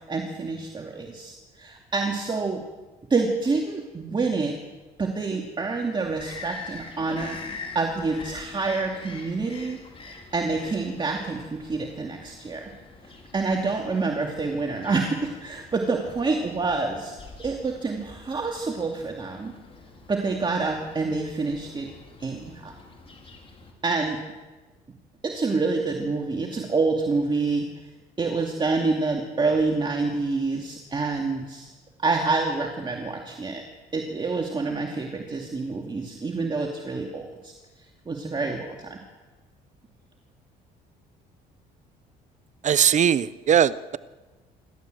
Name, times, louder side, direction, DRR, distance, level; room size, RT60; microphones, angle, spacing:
voice 1, 0.1-2.6 3.1-4.6 5.0-9.8 10.3-12.7 13.3-19.5 20.1-21.9 22.2-22.7 23.8-24.2 25.2-27.7 28.2-31.7 32.0-33.6 33.9-37.5 38.1-39.0, right 3 dB, 25° right, 1 dB, 2.4 m, -27 dB
Bird vocalization bird call bird song, 6.0-23.7, left 4 dB, 35° left, 4.4 m, -45 dB
voice 2, 42.6-44.0, right 9 dB, 45° right, 17 dB, 0.7 m, -20 dB
27.0 x 12.5 x 7.8 m, 1.2 s
cardioid pair, 95°, 17 cm